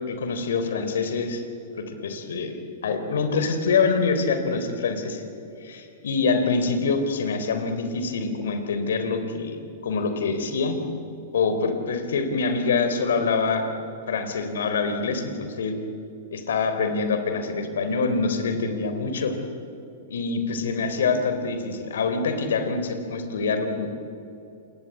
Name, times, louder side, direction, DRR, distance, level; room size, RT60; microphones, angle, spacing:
voice 1, 0.1-1.4 1.8-2.6 2.8-5.2 5.6-9.6 9.8-10.8 11.3-13.7 14.1-15.8 16.3-19.3 20.1-23.9, left 4 dB, 75° left, 8 dB, 3.8 m, -25 dB
27.0 x 22.5 x 9.6 m, 2.9 s
hypercardioid pair, 115°, 0 cm